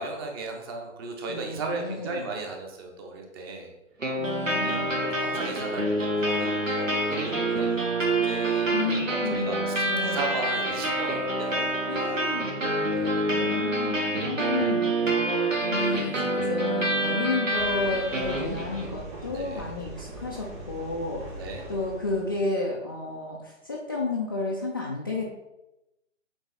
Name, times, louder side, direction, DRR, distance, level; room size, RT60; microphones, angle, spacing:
voice 1, 0.0-3.7 4.1-4.2 4.6-5.9 6.2-8.7 9.1-12.4 13.0-13.3 15.7-16.0 19.3-19.7 21.4-21.7, right 3 dB, 20° right, 2 dB, 0.9 m, -36 dB
voice 2, 1.3-2.3 4.2-5.1 8.7-10.3 11.9-12.6 13.3-21.4 21.7-25.3, left 3 dB, 20° left, -4 dB, 0.4 m, -32 dB
sound 1, 4.0-19.0, right 1 dB, 85° right, 1.7 m, -27 dB
sound 2, 17.5-22.5, right 2 dB, 50° right, 2.4 m, -41 dB
8.0 x 3.9 x 4.1 m, 0.92 s
figure-of-eight pair, 135°, 38 cm